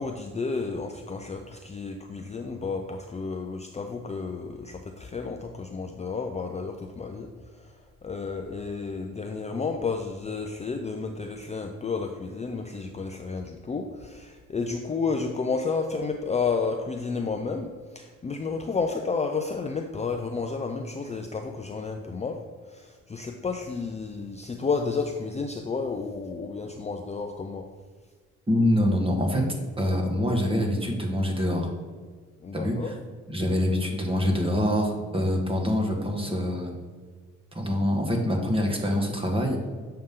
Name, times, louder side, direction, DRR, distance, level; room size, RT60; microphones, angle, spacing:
voice 1, 0.0-7.3 8.0-22.4 22.7-27.7 32.4-32.9, left 4 dB, 20° left, 4 dB, 0.5 m, -31 dB
voice 2, 28.5-29.5 29.8-31.7 32.5-32.9 33.3-36.7 37.5-39.7, left 1 dB, 20° right, 1 dB, 1.6 m, -25 dB
7.7 x 5.7 x 3.7 m, 1.6 s
cardioid pair, 90°, 30 cm